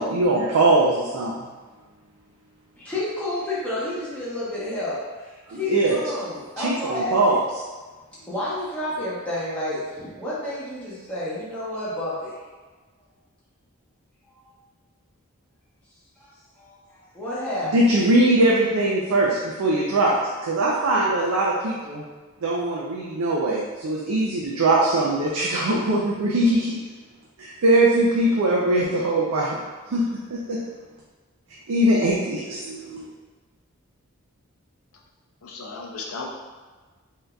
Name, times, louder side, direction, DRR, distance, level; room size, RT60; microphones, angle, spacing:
voice 1, 0.0-1.5 5.5-6.0 6.6-7.4 17.7-22.0 22.4-26.8 27.4-29.6 29.9-30.6 31.7-33.1, right 1 dB, 80° right, -4 dB, 0.4 m, -21 dB
voice 2, 2.8-7.4 8.3-12.4 16.2-16.3 16.5-17.7, left 1 dB, 5° left, -10 dB, 0.9 m, -30 dB
voice 3, 35.4-36.3, left 4 dB, 75° left, 0 dB, 0.5 m, -35 dB
3.6 x 2.7 x 2.2 m, 1.3 s
head